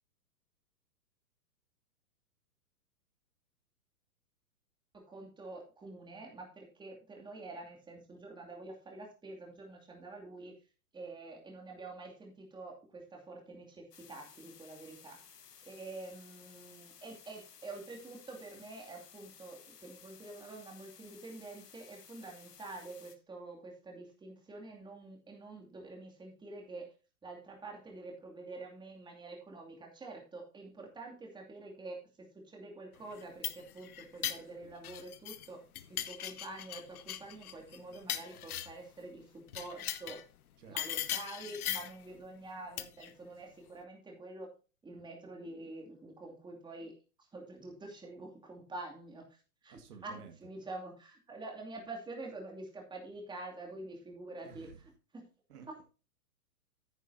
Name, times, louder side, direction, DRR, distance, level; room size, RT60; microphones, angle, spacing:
voice 1, 4.9-10.5 10.9-15.2 15.6-26.9 27.2-35.6 35.9-40.3 40.7-44.5 44.8-46.9 47.2-49.4 49.6-54.7 55.1-55.2 55.7-55.8, right 2 dB, 10° right, 1 dB, 2.5 m, -47 dB
sound 1, 13.9-23.2, left 7 dB, 90° left, 1.4 m, -57 dB
sound 2, 33.1-35.5 35.8-38.9 39.5-40.2 40.8-42.0 42.8-43.1, left 11 dB, 65° left, 1.1 m, -39 dB
voice 2, 40.6-41.1 49.7-50.4 54.4-54.8 55.5-55.8, right 5 dB, 70° right, 6 dB, 2.1 m, -53 dB
9.8 x 9.8 x 2.7 m, 0.33 s
hypercardioid pair, 125°, 47 cm